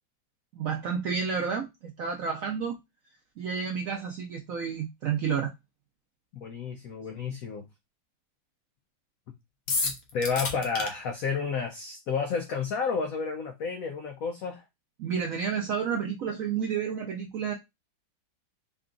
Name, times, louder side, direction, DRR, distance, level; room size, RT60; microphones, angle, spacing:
voice 1, 0.5-2.8 3.4-5.5 15.0-17.5, right 6 dB, 85° right, 0.7 m, -30 dB
voice 2, 6.3-7.7 10.1-14.6, left 5 dB, 75° left, 0.8 m, -31 dB
sound 1, 9.7-10.9, left 4 dB, 60° left, 1.1 m, -29 dB
3.8 x 2.3 x 3.7 m
omnidirectional pair, 2.1 m